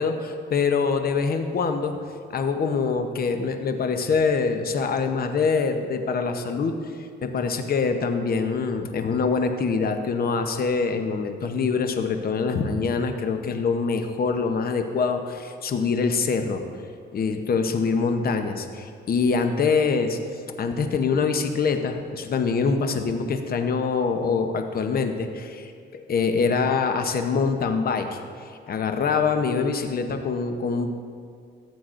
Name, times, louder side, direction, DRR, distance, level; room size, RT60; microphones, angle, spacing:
voice 1, 0.0-2.0 2.3-16.6 17.1-20.2 20.6-30.9, left 5 dB, 50° left, 6 dB, 0.8 m, -24 dB
14.0 x 7.8 x 2.6 m, 2.2 s
cardioid pair, 90°, 20 cm